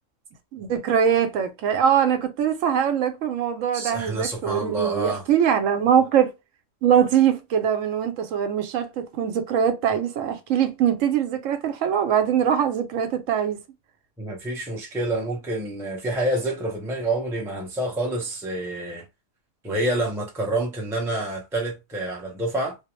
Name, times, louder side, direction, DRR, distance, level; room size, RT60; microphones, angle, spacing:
voice 1, 0.5-6.3 6.8-13.6, right 8 dB, 85° right, 1.0 m, -22 dB
voice 2, 3.7-5.2 14.2-19.0 19.6-22.8, right 1 dB, 5° right, 0.4 m, -28 dB
2.3 x 2.0 x 2.9 m
omnidirectional pair, 1.3 m